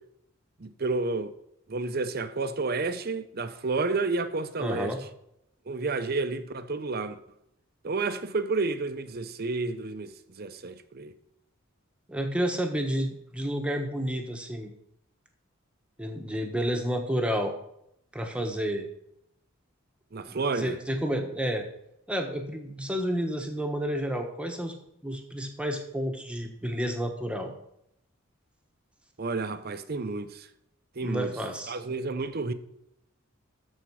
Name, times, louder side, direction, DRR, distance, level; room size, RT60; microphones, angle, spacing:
voice 1, 0.6-1.3 1.7-4.9 5.7-7.2 7.8-11.1 20.1-20.8 29.2-30.5 31.0-31.3 31.7-32.5, right 3 dB, 45° right, 0.7 m, -30 dB
voice 2, 4.6-5.0 12.1-14.7 16.0-17.5 18.1-18.9 20.3-21.7 22.1-24.7 25.0-27.5 31.0-31.7, equal, 5° right, 1.2 m, -30 dB
13.0 x 4.4 x 6.3 m
head